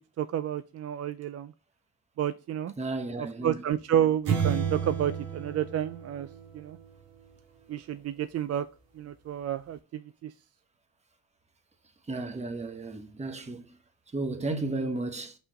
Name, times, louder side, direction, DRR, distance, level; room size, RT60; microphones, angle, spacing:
voice 1, 0.2-1.5 2.2-2.7 3.4-6.3 6.5-6.8 7.7-8.7 9.0-10.3, right 10 dB, 45° right, 0.5 m, -30 dB
voice 2, 2.8-3.6 12.1-13.6 14.1-15.3, right 2 dB, 20° right, 1.2 m, -33 dB
sound 1, 4.3-6.9, right 7 dB, 85° right, 2.4 m, -31 dB
5.6 x 4.3 x 5.3 m
cardioid pair, 100°, 34 cm